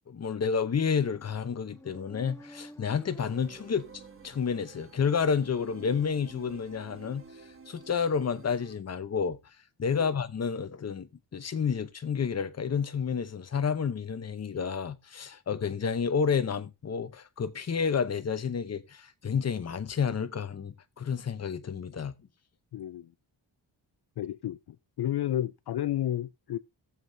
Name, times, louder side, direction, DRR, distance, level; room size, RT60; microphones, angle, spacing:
voice 1, 0.1-3.9 4.2-7.3 7.7-9.4 9.8-22.2, left 6 dB, 35° left, 0.8 m, -30 dB
Motorcycle, 1.0-4.7, left 1 dB, 5° left, 0.6 m, -51 dB
sound 1, 3.1-8.8, right 4 dB, 30° right, 1.4 m, -51 dB
voice 2, 22.7-23.1 24.2-26.6, left 12 dB, 65° left, 0.5 m, -32 dB
16.5 x 7.4 x 2.7 m
wide cardioid pair, 170°, 43 cm